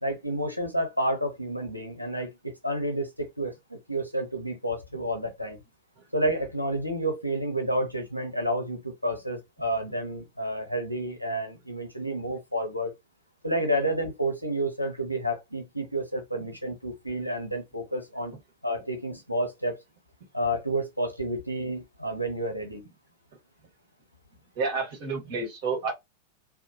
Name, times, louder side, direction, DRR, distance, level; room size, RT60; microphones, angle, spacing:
voice 1, 0.0-5.6 6.1-12.9 13.4-18.3 18.6-19.8 20.3-22.8, right 1 dB, 90° left, 0.7 m, -30 dB
voice 2, 24.5-25.9, right 4 dB, 45° right, 1.5 m, -30 dB
2.8 x 2.0 x 2.6 m
figure-of-eight pair, 90°, 0 cm